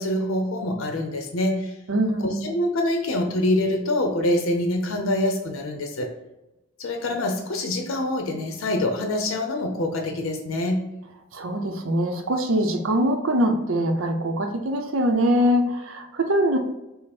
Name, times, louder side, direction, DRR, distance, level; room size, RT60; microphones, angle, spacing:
voice 1, 0.0-1.7 2.4-6.1 6.8-10.8, left 1 dB, 85° left, 3 dB, 0.6 m, -25 dB
voice 2, 1.9-2.5 11.3-16.6, equal, 80° right, 5 dB, 0.6 m, -23 dB
5.3 x 2.0 x 4.2 m, 0.96 s
head